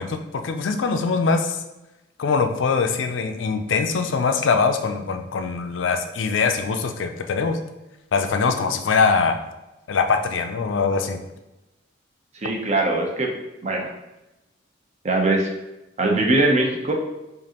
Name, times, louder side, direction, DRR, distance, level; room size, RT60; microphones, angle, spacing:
voice 1, 0.0-1.6 2.2-7.6 8.1-9.4 9.9-11.2, left 5 dB, 90° left, 7 dB, 0.4 m, -22 dB
voice 2, 12.4-13.3 13.6-13.9 15.0-15.5 16.0-16.9, right 2 dB, 40° right, 1 dB, 0.7 m, -21 dB
5.1 x 2.5 x 2.9 m, 0.99 s
head